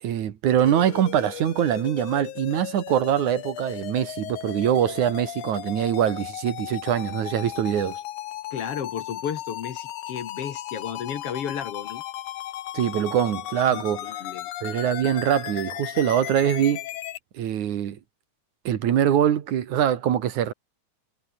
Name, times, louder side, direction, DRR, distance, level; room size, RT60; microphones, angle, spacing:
voice 1, 0.0-8.0 12.7-14.1 14.6-16.8 17.3-18.0 18.6-20.5, right 10 dB, 80° right, 3.1 m, -23 dB
sound 1, 0.6-17.2, left 14 dB, 90° left, 2.6 m, -36 dB
voice 2, 8.5-12.0 13.7-14.5, left 8 dB, 55° left, 2.4 m, -33 dB
omnidirectional pair, 3.4 m